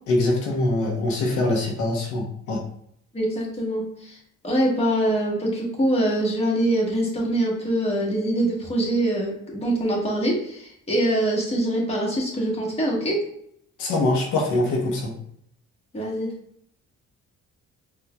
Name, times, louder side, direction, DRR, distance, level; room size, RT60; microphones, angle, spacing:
voice 1, 0.1-2.6 13.8-15.1, left 2 dB, 85° left, -1 dB, 0.9 m, -23 dB
voice 2, 3.1-4.2 4.4-13.2 15.9-16.3, right 1 dB, 20° left, -4 dB, 1.3 m, -24 dB
4.5 x 2.5 x 2.2 m, 0.69 s
cardioid pair, 90°, 30 cm